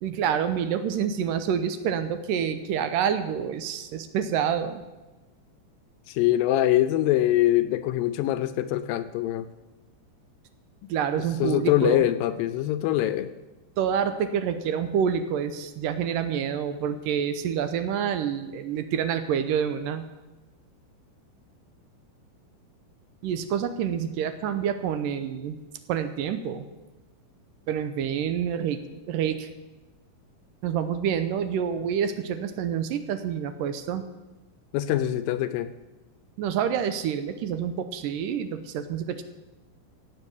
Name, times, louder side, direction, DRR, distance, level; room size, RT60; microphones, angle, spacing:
voice 1, 0.0-4.8 10.9-12.1 13.8-20.0 23.2-25.6 25.9-26.7 27.7-28.8 29.1-29.5 30.6-34.0 36.4-39.2, right 8 dB, 75° right, 10 dB, 2.2 m, -27 dB
voice 2, 6.1-9.5 11.4-13.3 34.7-35.7, left 13 dB, 80° left, 13 dB, 2.3 m, -23 dB
16.5 x 8.2 x 7.2 m, 1.1 s
omnidirectional pair, 4.3 m